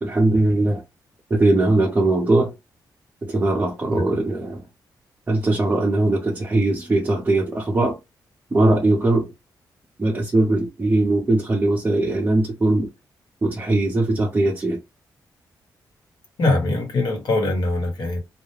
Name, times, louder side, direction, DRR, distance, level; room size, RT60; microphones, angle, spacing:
voice 1, 0.0-0.8 1.3-2.5 3.2-4.6 5.3-8.0 8.5-9.3 10.0-12.9 13.4-14.8, right 2 dB, 25° right, 0.6 m, -20 dB
voice 2, 16.4-18.2, left 2 dB, 60° left, 1.2 m, -22 dB
2.3 x 2.1 x 3.2 m
cardioid pair, 100°, 8 cm